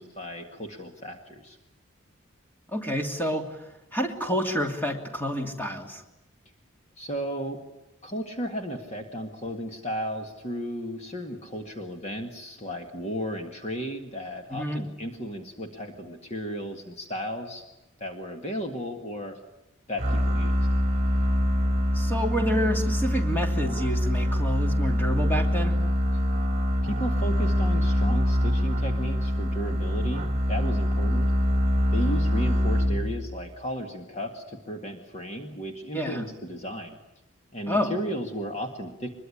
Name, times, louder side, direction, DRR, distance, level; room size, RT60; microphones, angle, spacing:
voice 1, 0.0-1.6 7.0-7.6 8.0-17.6 18.0-19.4 19.9-20.6 26.8-31.3 31.9-37.0 37.5-39.1, equal, 35° left, 4 dB, 2.0 m, -34 dB
voice 2, 2.7-3.6 3.9-6.0 14.5-14.9 21.9-25.8 35.9-36.3 37.7-37.9, equal, 10° left, 3 dB, 2.8 m, -28 dB
sound 1, 20.0-33.4, equal, 30° right, 2.7 m, -24 dB
24.0 x 22.0 x 10.0 m, 0.91 s
head